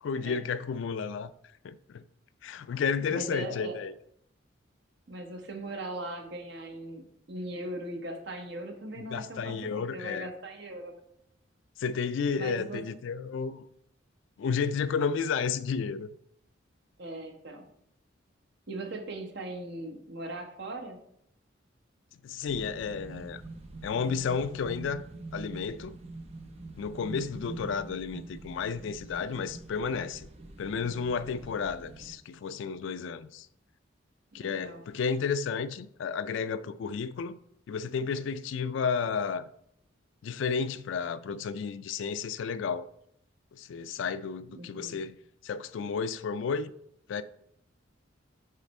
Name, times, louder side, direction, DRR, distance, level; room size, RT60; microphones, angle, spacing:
voice 1, 0.0-1.3 1.6-2.0 2.4-3.9 9.1-10.3 11.8-13.7 14.4-16.1 22.2-23.4 23.8-25.0 25.3-26.0 26.8-30.3 30.6-33.5 34.3-37.4 37.7-39.5 40.2-42.9 43.5-45.1 45.4-46.7 47.1-47.2, left 6 dB, 70° left, 0.3 m, -32 dB
voice 2, 3.1-3.8 5.1-11.0 12.3-12.8 17.0-17.6 18.7-21.0 34.3-34.8 44.5-45.0, right 1 dB, 60° right, 1.1 m, -39 dB
sound 1, 22.5-32.1, right 2 dB, 35° right, 0.6 m, -45 dB
7.5 x 3.3 x 4.2 m
head